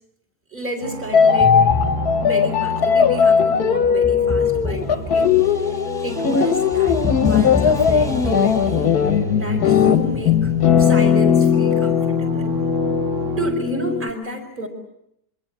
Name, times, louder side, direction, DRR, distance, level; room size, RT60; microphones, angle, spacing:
voice 1, 0.5-1.5 2.0-5.6 6.0-8.9 9.3-10.5 10.8-12.6 13.4-14.7, right 1 dB, 30° right, 3 dB, 5.1 m, -30 dB
sound 1, 0.8-13.5, right 4 dB, 55° right, 1.7 m, -33 dB
sound 2, 1.1-14.1, left 7 dB, 90° left, 1.7 m, -18 dB
sound 3, 1.4-2.6 3.8-9.2 10.0-11.3, left 3 dB, ahead, 1.7 m, -29 dB
26.5 x 24.5 x 8.0 m, 0.75 s
omnidirectional pair, 1.6 m